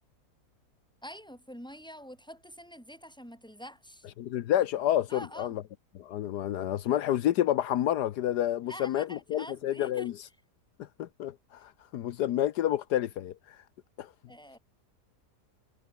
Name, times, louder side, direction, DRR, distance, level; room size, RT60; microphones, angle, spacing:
voice 1, 1.0-4.1 5.1-5.6 8.6-10.1 14.3-14.6, equal, 5° left, 7.2 m, -46 dB
voice 2, 4.2-5.6 5.9-10.1 10.8-13.6 14.0-14.1, left 12 dB, 80° left, 1.4 m, -29 dB
omnidirectional pair, 1.7 m